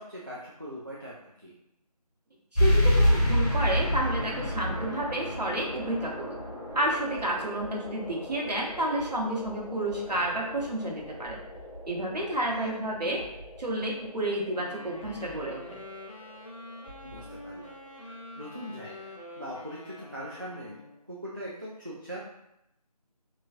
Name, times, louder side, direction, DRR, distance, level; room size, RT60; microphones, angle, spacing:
voice 1, 0.0-1.5 12.5-12.8 17.0-17.7 18.0-19.1 19.4-20.8 21.1-22.3, equal, 30° right, -6 dB, 0.3 m, -41 dB
sound 1, 2.5-17.6, equal, 70° left, 1.4 m, -30 dB
voice 2, 2.5-6.4 6.7-11.4 11.9-13.2 13.6-15.8, right 1 dB, 85° right, -2 dB, 0.9 m, -30 dB
sound 2, 11.2-12.3 13.2-14.1 15.0-16.1 16.8-17.9, left 1 dB, 5° right, 1.0 m, -52 dB
Wind instrument woodwind instrument, 14.5-21.0, left 1 dB, 50° left, 0.7 m, -46 dB
3.0 x 2.6 x 2.4 m, 0.82 s
figure-of-eight pair, 170°, 20 cm